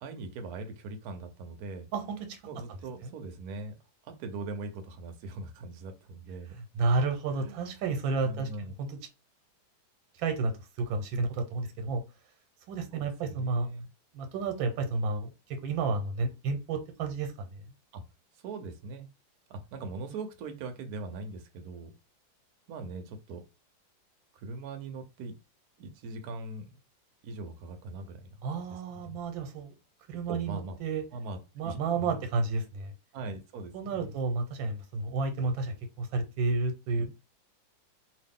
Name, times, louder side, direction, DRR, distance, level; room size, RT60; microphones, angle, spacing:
voice 1, 0.0-1.9 2.4-3.7 4.0-6.5 7.4-7.7 8.2-8.7 12.9-13.8 17.9-18.0 18.4-19.1 19.5-21.9 22.7-23.4 24.3-25.3 25.8-26.7 27.2-28.3 28.7-29.2 30.3-30.8 31.1-31.4 31.6-32.1 33.1-34.1 37.0-37.1, right 3 dB, 65° right, 6 dB, 1.0 m, -41 dB
voice 2, 1.9-2.4 3.0-3.1 6.5-9.0 10.2-12.0 12.7-13.7 14.1-17.6 28.4-29.7 30.1-31.0 31.6-32.9 33.7-37.1, right 3 dB, 90° right, 6 dB, 1.5 m, -31 dB
3.0 x 2.6 x 3.5 m, 0.27 s
omnidirectional pair, 2.0 m